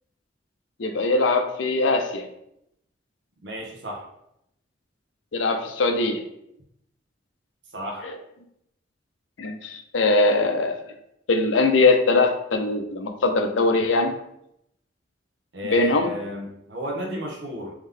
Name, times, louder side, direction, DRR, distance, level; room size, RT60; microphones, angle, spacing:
voice 1, 0.8-2.3 5.3-6.2 8.0-8.2 9.4-10.7 11.3-14.2 15.7-16.1, left 3 dB, 85° left, 5 dB, 0.6 m, -21 dB
voice 2, 3.4-4.0 7.7-8.1 15.5-17.7, equal, 70° right, -1 dB, 1.0 m, -33 dB
3.5 x 3.1 x 3.7 m, 0.78 s
head